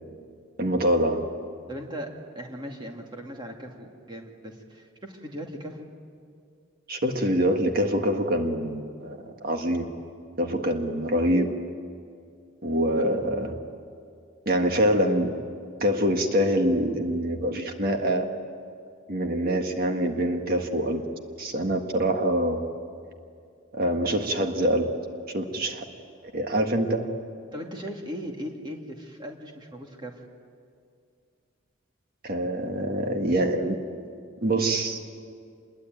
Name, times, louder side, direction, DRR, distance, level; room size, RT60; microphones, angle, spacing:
voice 1, 0.6-1.2 6.9-9.8 10.4-11.5 12.6-13.6 14.4-15.3 15.8-18.2 19.1-21.0 21.4-22.6 23.7-24.9 25.3-25.8 26.3-27.1 32.2-33.7 34.4-35.0, right 1 dB, 45° right, 4 dB, 1.7 m, -25 dB
voice 2, 1.7-5.9 13.0-13.1 27.5-30.2, equal, 20° right, 1 dB, 2.5 m, -38 dB
27.0 x 22.0 x 9.2 m, 2.3 s
head